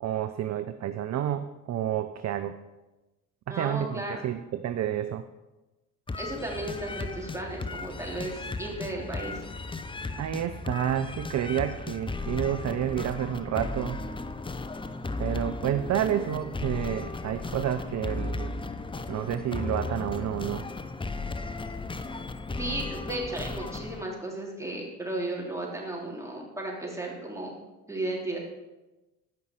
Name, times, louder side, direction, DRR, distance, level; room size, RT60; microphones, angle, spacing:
voice 1, 0.0-2.6 3.5-5.2 10.2-14.0 15.2-18.5 19.1-20.7, right 10 dB, 35° right, 10 dB, 0.6 m, -30 dB
voice 2, 3.5-4.2 6.2-9.4 22.6-27.5 27.9-28.4, right 1 dB, 5° right, -3 dB, 3.4 m, -34 dB
sound 1, 6.1-24.0, left 3 dB, 10° left, 0.5 m, -35 dB
15.0 x 5.5 x 4.7 m, 1.1 s
hypercardioid pair, 60°, 47 cm